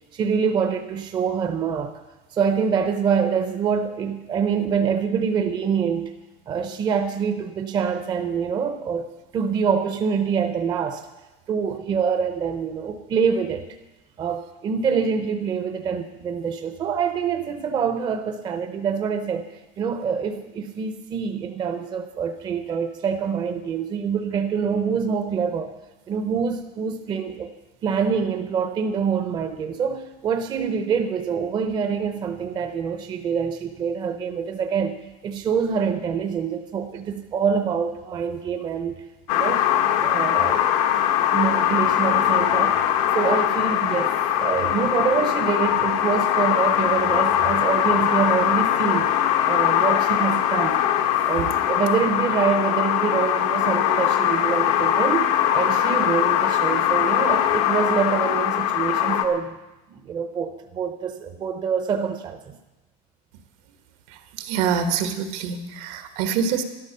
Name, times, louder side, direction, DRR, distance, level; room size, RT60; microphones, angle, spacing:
voice 1, 0.1-2.0 2.3-6.1 6.5-9.0 9.3-11.1 11.5-13.7 14.2-19.5 19.8-25.7 26.1-27.5 27.8-35.0 35.2-39.0 39.3-39.6 40.0-40.7 41.3-44.1 44.4-49.1 49.4-50.8 51.3-59.6 59.9-62.6, right 6 dB, 25° right, 7 dB, 0.7 m, -25 dB
sound 1, 39.3-59.2, left 11 dB, 85° left, 1.4 m, -21 dB
voice 2, 64.4-66.6, right 7 dB, 75° right, 7 dB, 1.7 m, -25 dB
12.5 x 12.0 x 6.8 m, 1.0 s
cardioid pair, 180°, 17 cm